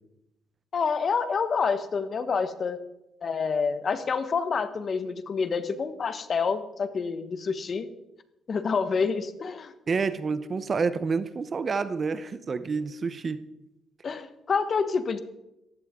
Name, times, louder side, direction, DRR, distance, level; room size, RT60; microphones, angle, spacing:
voice 1, 0.7-2.8 3.2-7.9 8.5-9.7 14.0-15.2, left 5 dB, 45° left, 10 dB, 1.3 m, -28 dB
voice 2, 9.9-13.4, right 4 dB, 40° right, 13 dB, 0.9 m, -28 dB
17.0 x 15.5 x 3.8 m, 0.92 s
cardioid pair, 90°, 0 cm